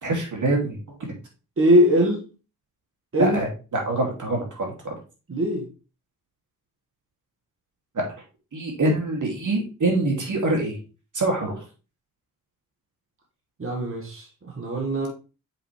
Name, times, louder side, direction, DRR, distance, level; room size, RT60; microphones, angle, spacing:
voice 1, 0.0-1.1 3.2-4.7 7.9-8.1 8.5-10.8 11.1-11.6, right 2 dB, 55° right, 1 dB, 2.7 m, -25 dB
voice 2, 1.6-2.3 3.1-3.4 5.3-5.7 13.6-15.1, equal, 35° right, -1 dB, 2.0 m, -21 dB
7.1 x 5.1 x 3.3 m, 0.32 s
cardioid pair, 65°, 36 cm